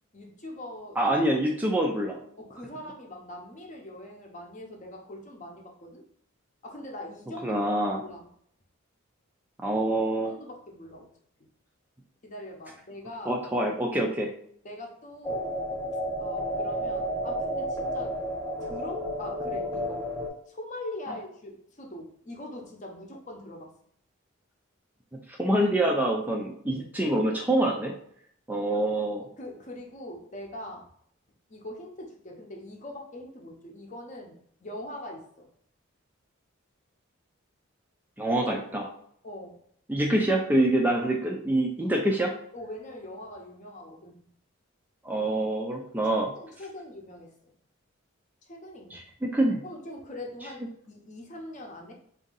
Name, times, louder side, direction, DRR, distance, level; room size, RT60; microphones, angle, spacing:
voice 1, 0.1-1.1 2.4-6.0 6.6-7.6 8.0-8.3 10.2-11.1 12.2-13.4 14.6-15.6 16.1-18.1 18.6-20.0 20.5-23.7 28.7-28.8 29.2-30.9 31.5-35.5 39.2-39.6 42.5-44.3 46.3-47.5 48.5-49.0 49.6-51.9, left 1 dB, 35° left, 1 dB, 0.7 m, -42 dB
voice 2, 1.0-2.2 7.4-8.0 9.6-10.3 13.3-14.3 25.3-27.9 28.5-29.2 38.2-38.9 39.9-42.3 45.0-46.3 48.9-49.6, right 1 dB, 10° right, 0 dB, 0.3 m, -26 dB
sound 1, 15.2-20.3, equal, 15° left, 1.0 m, -31 dB
3.6 x 2.7 x 3.8 m, 0.66 s
head